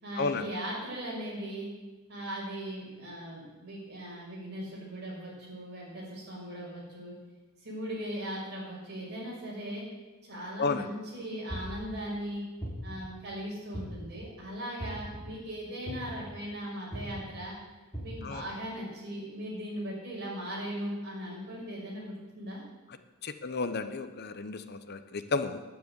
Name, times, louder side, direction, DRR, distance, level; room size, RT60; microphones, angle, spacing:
voice 1, 0.0-1.7 2.1-7.1 7.6-9.9 10.2-12.4 12.8-17.5 18.0-22.6, equal, 50° right, -4 dB, 5.9 m, -38 dB
sound 1, 11.5-11.9 12.6-13.1 13.7-14.2 14.8-15.2 15.9-16.3 16.9-17.2 17.9-18.3, equal, 10° left, 4.0 m, -38 dB
voice 2, 23.2-25.6, left 4 dB, 45° left, 10 dB, 0.7 m, -32 dB
10.5 x 10.0 x 8.0 m, 1.2 s
head